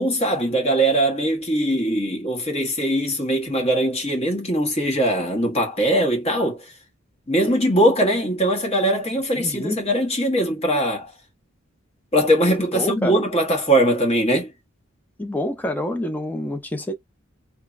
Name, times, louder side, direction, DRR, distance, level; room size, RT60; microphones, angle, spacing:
voice 1, 0.0-6.7 7.3-11.1 12.1-14.5, right 1 dB, 30° left, 1.0 m, -21 dB
voice 2, 9.3-9.8 12.7-13.2 15.2-16.9, left 1 dB, 10° left, 0.4 m, -27 dB
3.2 x 2.1 x 2.4 m
head